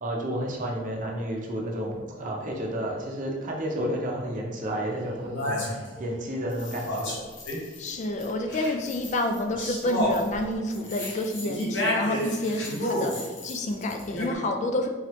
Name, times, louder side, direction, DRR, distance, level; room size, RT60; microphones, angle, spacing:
voice 1, 0.0-7.2, equal, 45° right, 0 dB, 0.7 m, -31 dB
sound 1, 4.6-4.7 5.3-6.0 6.5-7.9 8.2-14.3, left 1 dB, 80° left, 1.0 m, -31 dB
voice 2, 7.8-14.9, left 1 dB, 40° left, 5 dB, 0.4 m, -29 dB
3.9 x 3.1 x 3.0 m, 1.3 s
head